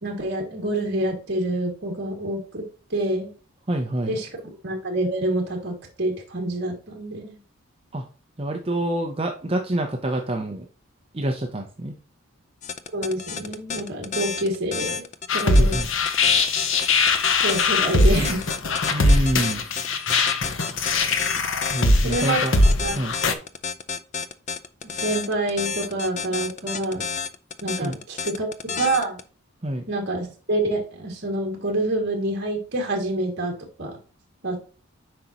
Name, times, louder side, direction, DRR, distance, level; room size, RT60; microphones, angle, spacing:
voice 1, 0.0-2.6 2.9-3.3 4.1-4.3 4.6-7.4 12.9-15.0 15.3-15.8 17.4-18.4 22.0-22.4 22.8-23.0 25.0-27.0 27.6-28.5 28.8-29.2 29.9-33.5 33.8-34.0 34.4-34.6, right 1 dB, 55° right, 1 dB, 2.2 m, -27 dB
voice 2, 3.7-4.1 7.9-8.1 8.4-10.7 11.1-11.9 15.5-15.9 18.9-19.6 21.7-22.5 23.0-23.1 27.8-28.0 29.6-29.9, right 1 dB, 25° right, 3 dB, 0.7 m, -26 dB
sound 1, 12.6-29.2, left 6 dB, 35° left, 0.5 m, -31 dB
sound 2, 15.3-23.3, left 2 dB, 65° left, 0.9 m, -21 dB
7.7 x 5.3 x 2.9 m, 0.36 s
head